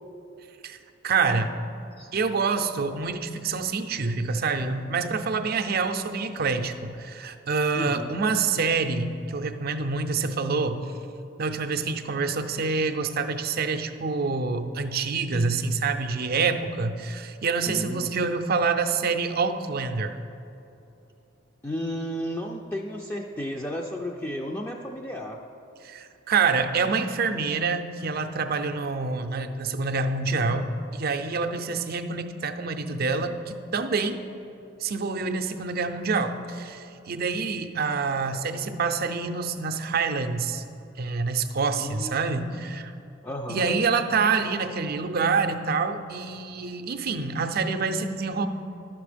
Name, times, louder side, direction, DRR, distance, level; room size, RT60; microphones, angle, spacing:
voice 1, 1.0-1.5 2.1-10.8 11.4-20.2 25.8-34.2 34.8-40.6 41.0-42.9 43.5-48.5, right 4 dB, 50° right, 7 dB, 0.5 m, -27 dB
voice 2, 7.7-8.2 17.7-18.1 21.6-25.4 41.8-42.5 43.2-43.8, equal, 10° left, 0 dB, 0.4 m, -33 dB
11.5 x 6.0 x 5.0 m, 2.8 s
head